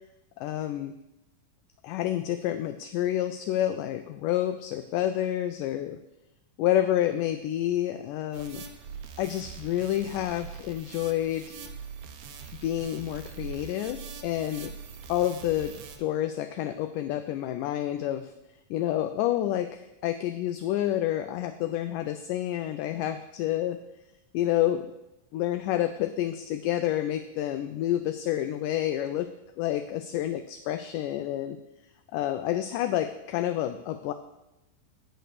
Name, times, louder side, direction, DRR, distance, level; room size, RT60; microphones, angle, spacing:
voice 1, 0.4-0.9 1.8-6.0 6.6-8.6 9.2-11.6 12.6-14.7 15.1-18.3 18.7-23.8 24.3-24.8 25.3-29.3 29.6-31.6 32.1-34.1, left 12 dB, 80° left, 9 dB, 1.9 m, -29 dB
sound 1, 8.3-16.0, right 6 dB, 70° right, 1.7 m, -43 dB
9.0 x 6.7 x 6.6 m, 0.93 s
omnidirectional pair, 4.1 m